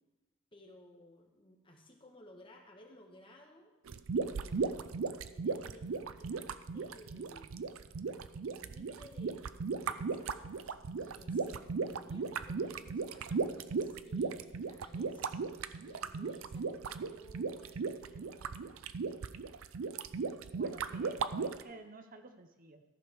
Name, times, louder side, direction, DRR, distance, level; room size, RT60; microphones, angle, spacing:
voice 1, 0.5-3.7 4.4-4.9 5.3-7.6 8.5-9.4 9.9-15.3 15.8-18.7, left 1 dB, 25° left, 1 dB, 1.5 m, -57 dB
sound 1, 3.9-21.6, right 5 dB, 90° right, 0.5 m, -36 dB
voice 2, 20.5-22.8, right 3 dB, 45° right, 7 dB, 0.7 m, -51 dB
14.0 x 5.1 x 6.2 m, 1.1 s
head